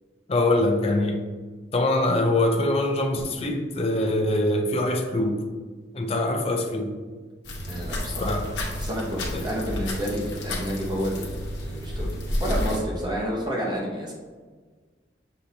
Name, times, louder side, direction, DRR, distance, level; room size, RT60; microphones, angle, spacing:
voice 1, 0.3-1.2 1.7-5.4 5.9-6.9 8.2-8.5 9.3-9.5, left 1 dB, 35° left, 3 dB, 0.4 m, -23 dB
sound 1, 7.4-12.8, left 1 dB, 75° left, 1.0 m, -31 dB
voice 2, 7.7-11.3 11.6-12.1 12.4-14.1, equal, 25° right, -4 dB, 0.9 m, -30 dB
6.6 x 2.7 x 2.8 m, 1.4 s
head